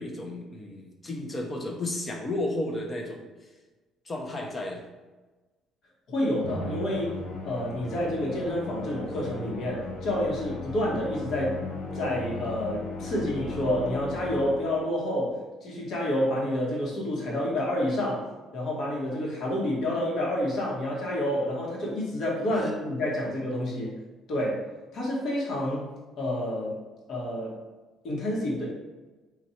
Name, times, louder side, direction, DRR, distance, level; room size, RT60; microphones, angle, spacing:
voice 1, 0.0-3.2 4.0-4.8 22.5-22.7, left 1 dB, 25° left, 1 dB, 0.8 m, -33 dB
voice 2, 6.1-7.2 7.4-11.6 11.9-18.2 18.5-24.0 24.3-27.6 28.0-28.7, left 1 dB, 55° left, -4 dB, 1.4 m, -29 dB
Musical instrument, 6.4-15.0, left 3 dB, 75° left, 0.7 m, -37 dB
4.2 x 2.5 x 4.3 m, 1.2 s
cardioid pair, 125°, 0 cm